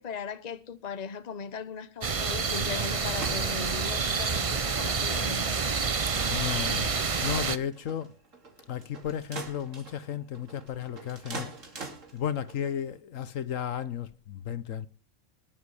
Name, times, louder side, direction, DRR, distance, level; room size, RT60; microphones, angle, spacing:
voice 1, 0.0-5.6, left 6 dB, 35° left, 1.1 m, -38 dB
sound 1, 2.0-7.6, right 5 dB, 30° right, 0.7 m, -28 dB
sound 2, 2.6-13.0, right 3 dB, 70° right, 2.9 m, -45 dB
voice 2, 6.3-6.9 7.2-8.1 8.7-11.5 12.1-14.9, left 9 dB, 75° left, 1.3 m, -34 dB
20.5 x 8.0 x 4.9 m
omnidirectional pair, 1.4 m